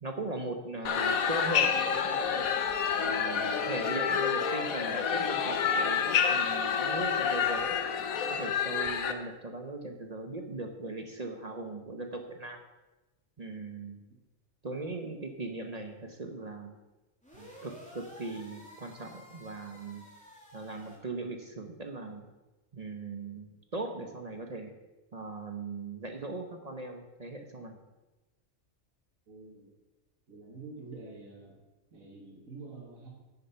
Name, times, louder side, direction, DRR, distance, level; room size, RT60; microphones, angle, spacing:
voice 1, 0.0-2.6 3.0-7.8 8.3-12.6 13.4-14.0 14.6-16.8 17.3-20.1 20.5-22.2 22.7-24.7 25.1-27.8, right 2 dB, 35° right, 5 dB, 0.8 m, -39 dB
sound 1, 0.8-9.1, left 7 dB, 80° left, 1.2 m, -28 dB
sound 2, 17.2-21.0, equal, 5° left, 2.4 m, -52 dB
voice 2, 29.3-29.7 30.3-31.6 31.9-33.1, right 3 dB, 70° right, -2 dB, 2.3 m, -47 dB
9.8 x 6.7 x 5.7 m, 1.1 s
omnidirectional pair, 1.5 m